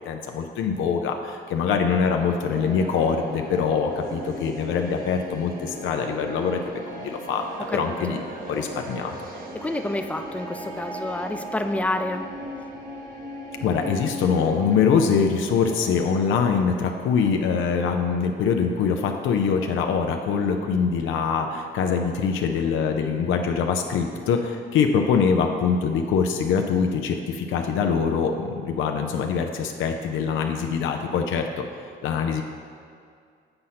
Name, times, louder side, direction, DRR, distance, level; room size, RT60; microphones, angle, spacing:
voice 1, 0.0-6.6 7.0-7.5 7.7-8.2 8.5-9.1 13.6-31.5 32.0-32.4, left 6 dB, 80° left, 4 dB, 0.5 m, -23 dB
sound 1, 1.8-20.0, right 1 dB, 45° right, 1.2 m, -38 dB
voice 2, 9.5-12.3, left 1 dB, 5° left, 6 dB, 0.5 m, -28 dB
7.8 x 4.2 x 5.7 m, 2.2 s
cardioid pair, 90°, 20 cm